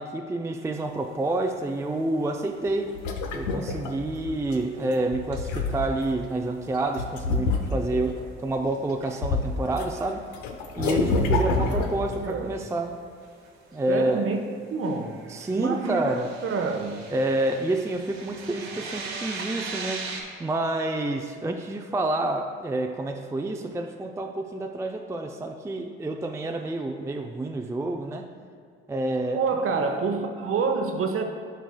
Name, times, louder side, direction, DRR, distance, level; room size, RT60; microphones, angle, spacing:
voice 1, 0.0-3.0 3.3-10.3 10.8-13.0 13.7-14.3 15.3-16.3 17.1-20.1 20.4-28.3 28.9-29.4, right 2 dB, 10° right, 4 dB, 0.4 m, -28 dB
sound 1, 0.9-1.5 1.7-1.9 2.3-2.4 2.7-3.8 4.1-6.1 6.6-10.5 10.8-11.2 11.5-11.6 11.9-12.1 12.6-14.4 14.8-20.2, right 4 dB, 65° right, 1.2 m, -41 dB
sound 2, 2.7-4.5 5.0-6.1 7.0-8.1 8.6-9.8 10.1-12.2, left 3 dB, 75° left, 0.7 m, -27 dB
voice 2, 11.7-12.6 13.9-14.4 14.7-15.2 15.5-16.1 16.4-17.1 29.3-31.3, right 4 dB, 45° right, 4 dB, 0.9 m, -27 dB
12.0 x 4.6 x 2.3 m, 2.3 s
hypercardioid pair, 50°, 30 cm